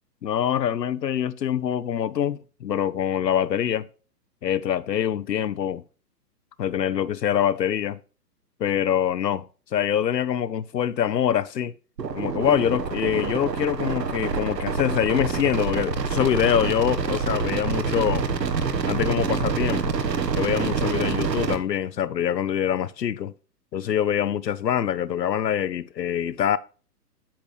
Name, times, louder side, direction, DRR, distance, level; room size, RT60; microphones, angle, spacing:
voice 1, 0.2-3.9 4.4-5.8 6.6-8.0 8.6-9.5 9.7-11.7 12.1-18.3 18.9-19.9 20.4-23.3 23.7-26.6, left 9 dB, 90° left, 0.7 m, -24 dB
sound 1, 12.0-21.6, right 5 dB, 85° right, 1.4 m, -26 dB
8.9 x 6.8 x 3.2 m
hypercardioid pair, 130°, 49 cm